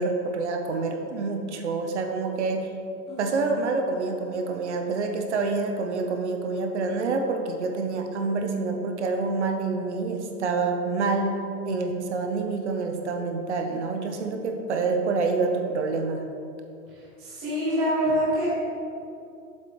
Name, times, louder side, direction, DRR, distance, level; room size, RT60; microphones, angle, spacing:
voice 1, 0.0-2.7 3.2-16.2, right 3 dB, 45° right, 4 dB, 0.9 m, -27 dB
voice 2, 17.2-18.5, equal, 5° right, -11 dB, 0.6 m, -25 dB
7.4 x 6.3 x 5.1 m, 2.6 s
hypercardioid pair, 180°, 46 cm